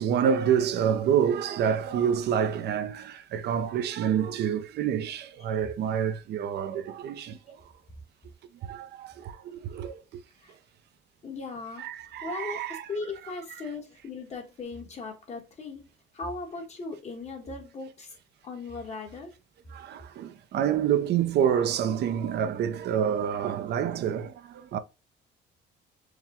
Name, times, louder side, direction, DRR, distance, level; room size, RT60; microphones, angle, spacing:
voice 1, 0.0-7.6 8.6-10.2 11.8-12.9 19.7-24.8, right 8 dB, 60° right, 0.6 m, -28 dB
voice 2, 11.2-11.9 12.2-15.9 16.1-18.1 18.4-19.3, left 3 dB, 35° left, 1.2 m, -38 dB
4.7 x 2.2 x 3.5 m
cardioid pair, 130°, 19 cm